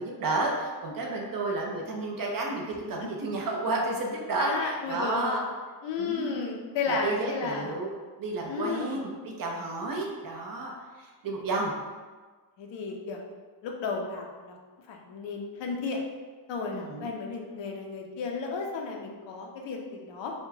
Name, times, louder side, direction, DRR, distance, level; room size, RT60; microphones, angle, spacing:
voice 1, 0.0-5.4 6.0-6.3 6.9-7.9 8.2-11.7 16.7-17.1, right 2 dB, 50° right, -1 dB, 0.7 m, -31 dB
voice 2, 4.4-5.4 5.8-7.8 8.5-9.0 12.6-13.2 13.6-14.5 14.9-16.0 16.5-20.3, left 4 dB, 75° left, 1 dB, 0.7 m, -33 dB
4.3 x 2.2 x 2.7 m, 1.4 s
cardioid pair, 145°, 44 cm